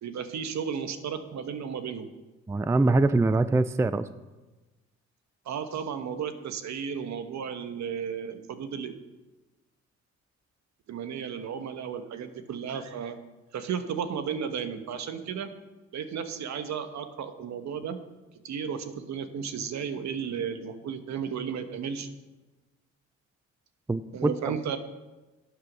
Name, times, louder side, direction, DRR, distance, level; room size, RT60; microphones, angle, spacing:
voice 1, 0.0-2.1 5.4-9.0 10.9-13.2 13.5-15.5 15.9-18.0 18.4-22.1 24.1-24.8, right 7 dB, 65° right, 9 dB, 1.2 m, -34 dB
voice 2, 2.5-4.0 23.9-24.6, right 2 dB, 10° right, 14 dB, 0.4 m, -24 dB
11.5 x 8.2 x 6.2 m, 1.1 s
cardioid pair, 90°, 30 cm